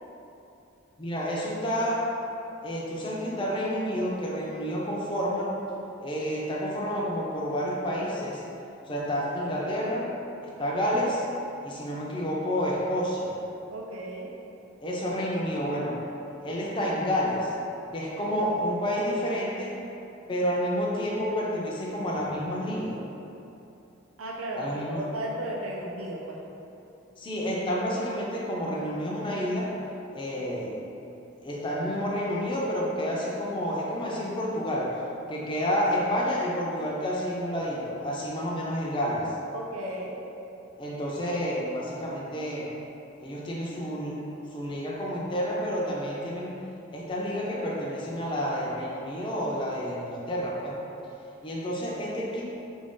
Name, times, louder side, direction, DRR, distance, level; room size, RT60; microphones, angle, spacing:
voice 1, 1.0-2.0 2.6-5.5 6.0-8.4 8.9-10.1 10.4-11.2 11.6-13.4 14.8-16.0 16.4-17.5 17.9-19.8 20.3-23.0 24.6-25.0 27.2-29.7 30.1-30.7 31.4-34.9 35.3-39.2 40.8-42.7 43.2-44.2 44.5-46.6 46.9-50.8 51.4-52.4, equal, 25° left, -4 dB, 0.4 m, -29 dB
voice 2, 13.7-14.3 24.2-26.4 39.5-40.2, right 1 dB, 90° right, -2 dB, 0.6 m, -35 dB
3.6 x 2.6 x 3.6 m, 2.9 s
head